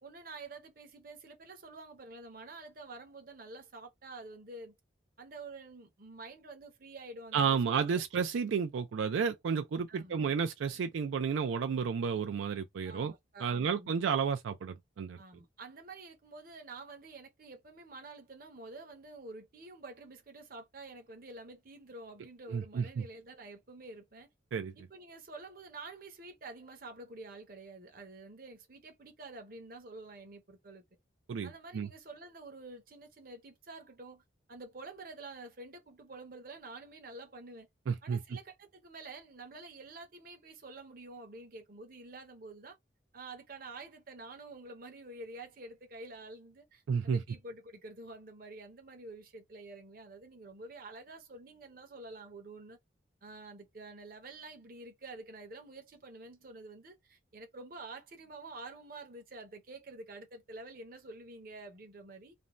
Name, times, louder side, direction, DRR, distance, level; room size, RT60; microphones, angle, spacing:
voice 1, 0.0-4.7 5.2-8.0 9.9-10.4 12.8-14.1 15.2-24.3 24.7-30.8 31.4-34.2 34.5-37.7 38.0-42.8 43.1-52.8 53.2-62.3, right 2 dB, 50° right, 0.7 m, -48 dB
voice 2, 7.3-13.1 13.4-15.2 22.5-23.1 24.5-24.7 31.3-31.9 37.9-38.2 46.9-47.2, right 6 dB, 90° right, 0.3 m, -32 dB
2.5 x 2.1 x 3.0 m
head